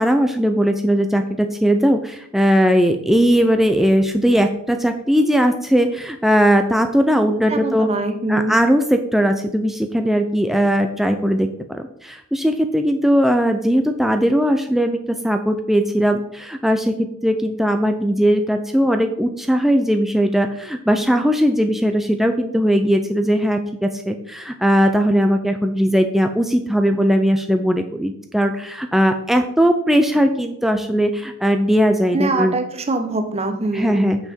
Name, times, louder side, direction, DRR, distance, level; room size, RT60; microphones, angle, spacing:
voice 1, 0.0-7.9 8.3-16.9 17.2-32.6 33.7-34.2, equal, ahead, 5 dB, 0.4 m, -18 dB
voice 2, 7.5-8.6 32.1-34.1, right 2 dB, 30° right, 6 dB, 0.9 m, -23 dB
8.7 x 5.7 x 4.4 m, 0.75 s
head